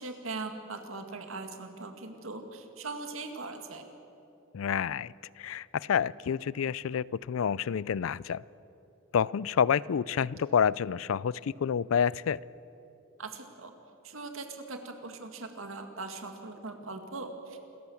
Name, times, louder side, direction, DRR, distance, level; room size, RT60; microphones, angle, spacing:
voice 1, 0.0-3.8 13.2-13.7 14.0-17.6, right 3 dB, 85° right, 6 dB, 2.1 m, -40 dB
voice 2, 4.5-5.1 5.4-8.4 9.1-12.4, left 7 dB, 80° left, 22 dB, 0.4 m, -28 dB
27.0 x 14.5 x 7.1 m, 2.9 s
head